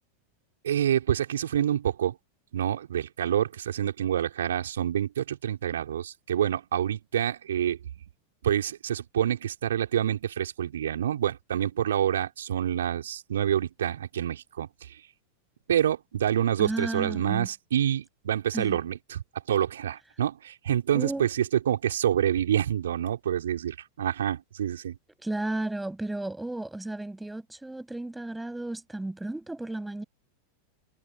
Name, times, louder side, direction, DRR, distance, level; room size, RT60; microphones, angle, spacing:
voice 1, 0.6-2.2 2.5-7.9 8.4-15.0 15.7-25.0, right 10 dB, 65° right, 5.6 m, -27 dB
voice 2, 16.6-17.5 18.5-18.8 20.9-21.2 25.2-30.0, right 2 dB, 5° right, 8.0 m, -33 dB
figure-of-eight pair, 90°, 0 cm